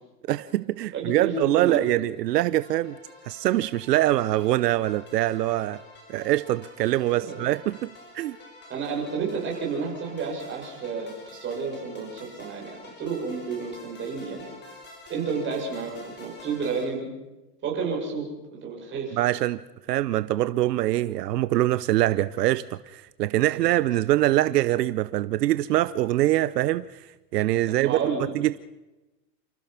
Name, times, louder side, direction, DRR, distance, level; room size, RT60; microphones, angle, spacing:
voice 1, 0.3-3.0 3.3-5.8 6.1-8.4 19.1-19.6 19.9-27.0 27.3-28.6, right 15 dB, 80° right, 15 dB, 0.9 m, -24 dB
voice 2, 0.9-2.0 7.1-7.4 8.7-14.5 15.1-17.1 17.6-19.2 27.7-28.3, right 5 dB, 25° right, -1 dB, 7.1 m, -31 dB
sound 1, 2.6-16.8, left 2 dB, 20° left, 5.4 m, -48 dB
29.5 x 15.5 x 5.9 m, 1.0 s
supercardioid pair, 150°, 48 cm